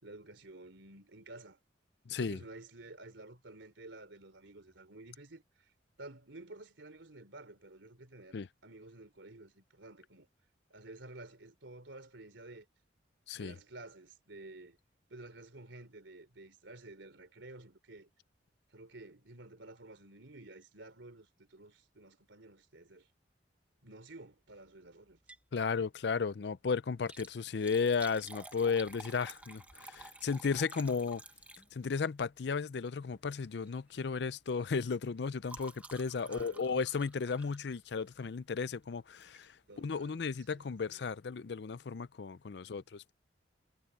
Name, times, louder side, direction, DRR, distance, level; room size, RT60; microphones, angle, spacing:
voice 1, 0.0-1.6 2.1-5.7 6.0-10.3 10.7-12.7 13.3-14.8 15.1-18.1 18.7-23.1 23.8-25.2 36.2-36.7 39.7-41.0 42.6-42.8, right 2 dB, 85° right, 3.2 m, -52 dB
voice 2, 2.1-2.4 8.3-8.5 13.3-13.5 25.5-31.2 31.7-43.1, left 5 dB, 65° left, 0.5 m, -34 dB
Liquid, 25.1-25.5 25.9-26.0 26.9-32.0 33.0-33.3 33.6-33.9 34.2-38.3 39.2-39.5 40.0-40.1 40.3-40.4, right 2 dB, 10° right, 1.2 m, -52 dB
head